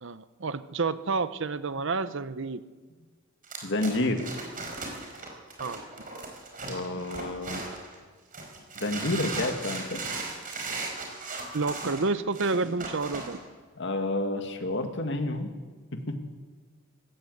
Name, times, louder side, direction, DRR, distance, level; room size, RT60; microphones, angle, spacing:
voice 1, 0.0-2.6 5.6-5.8 11.5-13.4, right 3 dB, 65° right, 13 dB, 0.9 m, -29 dB
sound 1, 3.4-7.9 8.3-13.4, right 3 dB, 40° right, 4.8 m, -37 dB
voice 2, 3.6-4.3 6.6-7.6 8.8-10.0 13.8-15.5 15.9-16.4, left 2 dB, 60° left, 6 dB, 2.1 m, -30 dB
19.5 x 17.0 x 8.1 m, 1.4 s
head